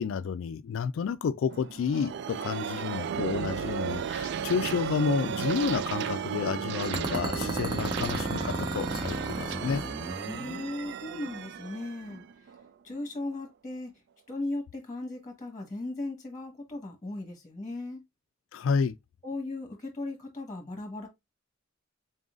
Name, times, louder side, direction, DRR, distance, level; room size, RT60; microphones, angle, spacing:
voice 1, 0.0-9.8 18.5-19.0, left 6 dB, 75° left, 0.3 m, -30 dB
sound 1, 1.5-13.0, right 8 dB, 60° right, 0.3 m, -34 dB
sound 2, 6.8-10.7, right 1 dB, 20° right, 1.1 m, -33 dB
voice 2, 10.3-12.2 12.8-13.9 14.3-18.0 19.2-21.1, left 2 dB, 20° left, 1.1 m, -37 dB
3.9 x 3.8 x 2.4 m
head